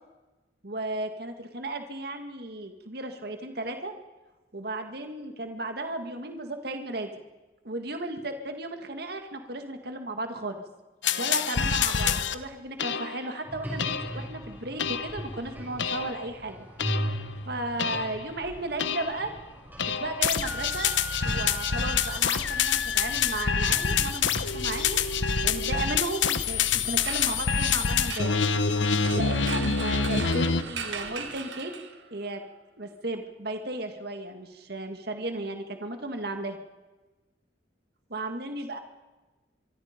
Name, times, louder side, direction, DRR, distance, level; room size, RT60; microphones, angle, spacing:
voice 1, 0.6-3.9 4.5-7.1 7.6-10.6 11.2-16.7 17.5-19.3 20.0-20.9 21.2-25.1 25.4-28.4 29.1-31.7 32.1-32.4 32.8-36.6 38.1-38.8, right 2 dB, 55° right, 6 dB, 1.9 m, -35 dB
sound 1, 11.0-12.3 12.8-13.3 13.8-14.2 14.8-15.2 15.8-16.3 16.8-17.3 17.8-18.2 18.8-19.2 19.8-30.6, left 6 dB, 80° left, 1.0 m, -26 dB
sound 2, 13.4-31.3, equal, 10° right, 6.2 m, -41 dB
sound 3, 26.5-32.2, right 6 dB, 80° right, 1.8 m, -39 dB
24.0 x 24.0 x 5.2 m, 1.2 s
head